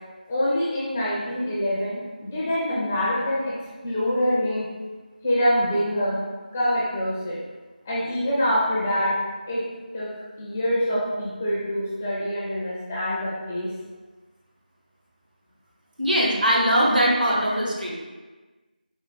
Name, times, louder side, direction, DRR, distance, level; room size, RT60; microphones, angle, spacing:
voice 1, 0.3-3.5 3.8-4.7 5.2-6.2 6.5-7.4 7.8-9.1 9.5-9.7 9.9-10.1 10.4-13.7, equal, 10° left, -8 dB, 0.4 m, -25 dB
voice 2, 16.0-17.9, equal, 65° right, -3 dB, 1.2 m, -21 dB
4.7 x 2.5 x 3.9 m, 1.3 s
figure-of-eight pair, 165°, 5 cm